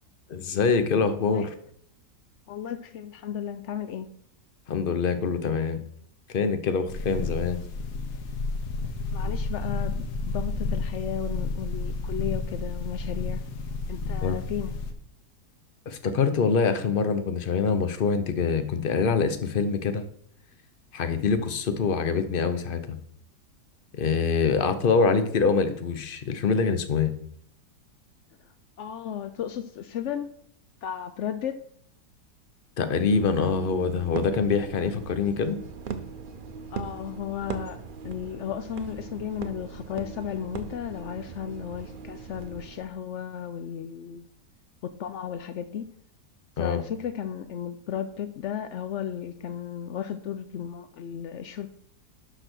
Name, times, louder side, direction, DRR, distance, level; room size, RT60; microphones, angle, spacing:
voice 1, 0.3-1.5 4.7-5.8 6.3-7.6 14.2-14.4 15.9-20.0 20.9-23.0 23.9-27.1 32.8-35.6 46.6-46.8, left 5 dB, 45° left, 10 dB, 0.8 m, -25 dB
voice 2, 2.5-4.1 9.1-13.5 13.9-14.7 28.8-30.3 30.8-31.6 36.7-44.3 44.8-45.9 46.6-51.7, left 9 dB, 85° left, 10 dB, 0.6 m, -34 dB
sound 1, 6.9-14.9, left 3 dB, 65° left, 1.6 m, -31 dB
sound 2, 33.1-42.9, right 5 dB, 70° right, 0.5 m, -39 dB
11.5 x 4.2 x 6.1 m, 0.66 s
omnidirectional pair, 1.9 m